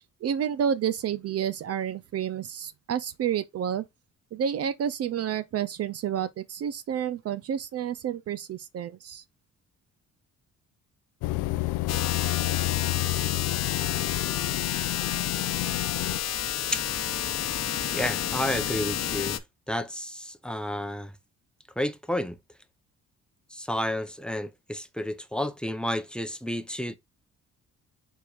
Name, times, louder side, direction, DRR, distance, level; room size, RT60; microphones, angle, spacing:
voice 1, 0.0-3.9 4.3-9.2, right 9 dB, 55° right, 0.5 m, -30 dB
sound 1, 11.2-16.2, left 17 dB, 85° left, 0.5 m, -29 dB
sound 2, 11.9-19.4, left 10 dB, 55° left, 0.8 m, -30 dB
voice 2, 17.9-19.4 19.7-21.1 21.8-22.4 23.5-26.9, left 1 dB, 5° left, 0.7 m, -31 dB
4.7 x 4.6 x 2.4 m
cardioid pair, 90°, 30 cm